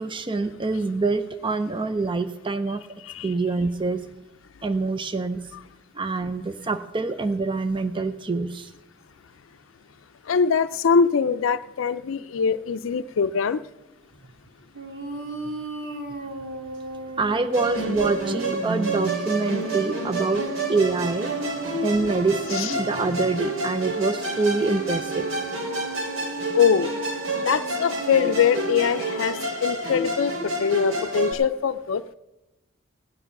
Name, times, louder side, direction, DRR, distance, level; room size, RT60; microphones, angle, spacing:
voice 1, 0.0-2.8 3.2-4.0 4.6-5.4 5.9-8.7 17.2-20.4 20.7-21.3 21.8-25.3, right 3 dB, 25° right, 10 dB, 0.5 m, -25 dB
voice 2, 10.3-13.6 22.5-22.7 26.5-26.9 27.5-32.0, left 6 dB, 75° left, 11 dB, 0.4 m, -23 dB
sound 1, 14.7-29.5, right 2 dB, 65° right, 1.8 m, -37 dB
Musical instrument, 17.5-31.3, right 1 dB, 85° right, 2.7 m, -29 dB
16.5 x 9.5 x 5.9 m, 0.97 s
head